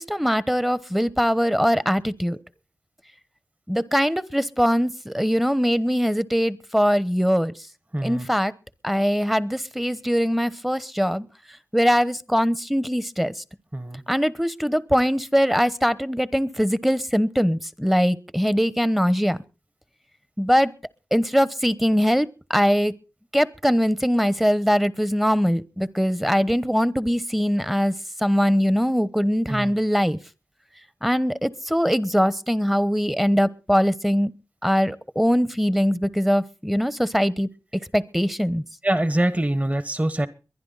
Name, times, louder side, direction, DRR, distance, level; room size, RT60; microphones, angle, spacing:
voice 1, 0.0-2.4 3.7-7.5 8.0-8.5 8.8-11.3 11.7-13.3 14.1-19.4 20.4-20.7 21.1-22.9 23.3-27.9 28.2-30.2 31.0-34.3 34.6-37.5 37.9-38.6, equal, 5° right, 1.0 m, -22 dB
voice 2, 7.9-8.3 13.7-14.0 29.5-29.7 38.8-40.3, right 1 dB, 25° right, 1.3 m, -24 dB
23.0 x 10.5 x 4.0 m
cardioid pair, 45°, 6 cm